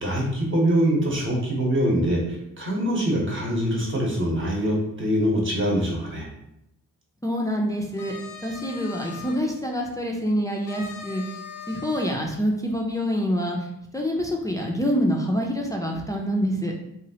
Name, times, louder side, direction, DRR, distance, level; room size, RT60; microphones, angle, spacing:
voice 1, 0.0-6.3, equal, 40° right, -2 dB, 0.9 m, -24 dB
voice 2, 7.2-8.1 8.4-11.2 11.7-13.6 13.9-16.7, equal, 10° left, -1 dB, 0.3 m, -26 dB
sound 1, 7.8-9.4 10.7-12.2, left 5 dB, 85° left, 0.6 m, -40 dB
3.0 x 2.4 x 2.8 m, 0.84 s
wide cardioid pair, 105°, 32 cm